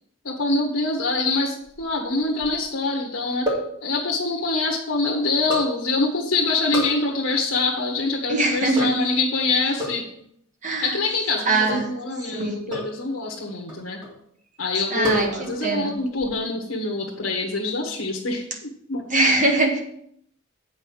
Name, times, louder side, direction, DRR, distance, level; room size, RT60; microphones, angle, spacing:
voice 1, 0.2-3.5 3.8-10.1 10.8-14.0 14.6-19.1, left 3 dB, 80° left, -2 dB, 1.3 m, -25 dB
sound 1, 1.7-2.7 3.5-3.8 5.5-5.8 6.7-7.0 8.8-9.1 9.8-10.1 11.7-12.0 12.7-13.0 13.7-14.2 15.0-15.7 15.9-16.4, equal, 20° right, 2.1 m, -30 dB
voice 2, 8.3-9.0 10.6-11.0 11.5-11.9 12.3-12.6 14.9-16.0 19.1-19.8, right 2 dB, 40° right, 2 dB, 1.7 m, -22 dB
8.1 x 5.5 x 6.1 m, 0.70 s
head